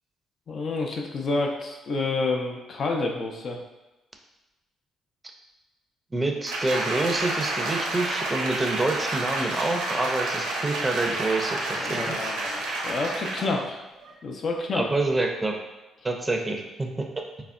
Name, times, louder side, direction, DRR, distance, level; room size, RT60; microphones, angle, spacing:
voice 1, 0.5-3.6 11.8-13.8 14.2-14.9, left 3 dB, 55° left, 1 dB, 0.4 m, -29 dB
voice 2, 6.1-12.1 14.7-15.5 16.0-16.9, right 2 dB, 25° right, 2 dB, 0.5 m, -27 dB
Applause, 6.5-13.6 14.0-14.1, right 2 dB, 80° right, 0.5 m, -30 dB
3.3 x 2.1 x 2.4 m, 1.0 s
hypercardioid pair, 55°, 0 cm